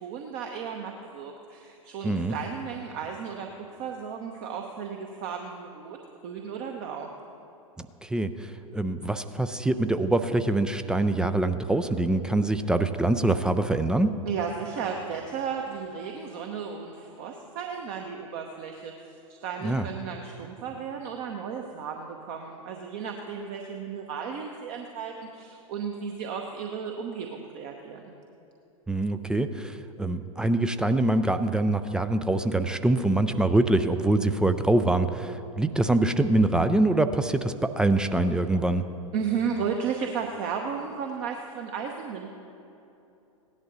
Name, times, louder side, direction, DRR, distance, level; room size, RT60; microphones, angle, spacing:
voice 1, 0.0-6.0 6.2-7.1 14.3-28.1 39.1-42.3, right 6 dB, 40° right, 2 dB, 0.9 m, -34 dB
voice 2, 2.0-2.3 7.8-14.1 19.6-19.9 28.9-38.8, right 2 dB, 5° right, 9 dB, 0.3 m, -24 dB
17.0 x 11.0 x 4.0 m, 2.8 s
figure-of-eight pair, 95°, 18 cm